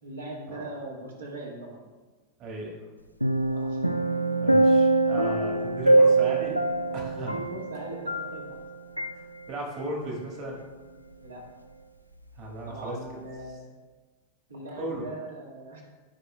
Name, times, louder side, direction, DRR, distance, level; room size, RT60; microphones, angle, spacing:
voice 1, 0.0-1.8 3.4-3.8 6.9-8.6 11.2-11.4 12.7-13.7 14.5-15.8, right 1 dB, 70° right, -2 dB, 1.8 m, -40 dB
voice 2, 2.4-2.8 4.4-6.6 6.9-7.4 9.5-10.6 12.4-13.0 14.8-15.0, right 2 dB, 35° right, 0 dB, 1.8 m, -35 dB
sound 1, 3.2-8.6 9.0-9.1, right 2 dB, 90° left, 0.3 m, -23 dB
15.0 x 5.1 x 2.3 m, 1.3 s
figure-of-eight pair, 90°, 0 cm